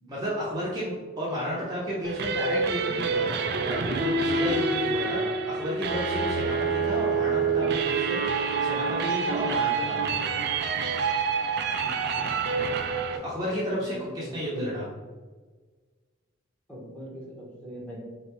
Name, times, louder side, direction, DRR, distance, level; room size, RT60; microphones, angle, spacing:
voice 1, 0.1-10.3 13.1-14.8, equal, 20° right, -7 dB, 0.8 m, -32 dB
sound 1, 2.0-13.2, right 4 dB, 55° right, 0.4 m, -27 dB
voice 2, 11.8-12.4 13.8-14.7 16.7-18.0, equal, 5° left, -5 dB, 1.1 m, -41 dB
4.0 x 3.4 x 3.0 m, 1.4 s
head